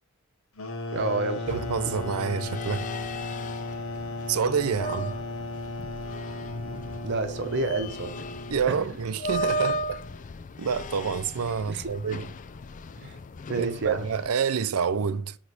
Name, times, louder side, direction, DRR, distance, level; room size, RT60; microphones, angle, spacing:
sound 1, 0.6-9.0, left 2 dB, 70° left, 1.0 m, -36 dB
voice 1, 0.9-1.5 7.0-8.1 8.7-8.8 11.7-11.9 13.0-13.2 13.5-14.1, right 3 dB, 55° right, 0.8 m, -29 dB
sound 2, 1.5-14.3, equal, 35° left, 0.4 m, -36 dB
voice 2, 1.5-2.9 4.3-5.1 8.5-10.0 10.6-12.3 13.5-15.4, right 6 dB, 90° right, 0.5 m, -28 dB
8.2 x 3.1 x 4.8 m
head